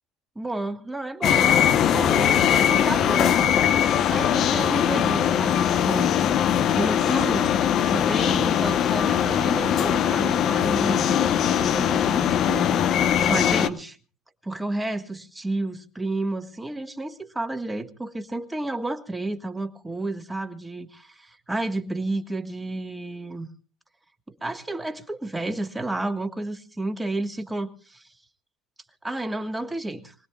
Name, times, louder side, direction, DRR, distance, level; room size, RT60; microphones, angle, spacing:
voice 1, 0.3-1.5 1.9-6.2 6.7-14.0 14.4-23.5 24.3-28.0 29.0-30.1, right 2 dB, 10° right, 1.4 m, -31 dB
sound 1, 1.2-13.7, left 9 dB, 50° left, 0.9 m, -21 dB
25.0 x 19.0 x 2.3 m
supercardioid pair, 90°, 0 cm